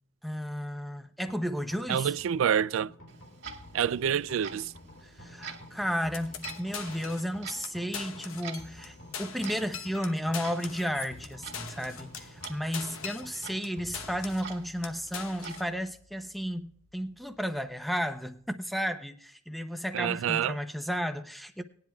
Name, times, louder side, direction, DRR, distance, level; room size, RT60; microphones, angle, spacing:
voice 1, 0.2-2.1 5.0-21.6, equal, ahead, 0.6 m, -33 dB
sound 1, 1.3-18.5, left 1 dB, 65° left, 3.1 m, -52 dB
voice 2, 1.9-2.9 3.7-4.7 19.9-20.6, right 8 dB, 75° right, 0.3 m, -27 dB
Clock, 3.1-15.6, right 6 dB, 55° right, 1.8 m, -48 dB
sound 2, 6.1-7.3 7.6-7.7 7.9-8.9 9.1-13.7 13.9-14.5 14.8-15.7, left 7 dB, 85° left, 1.0 m, -41 dB
19.5 x 10.5 x 2.3 m
head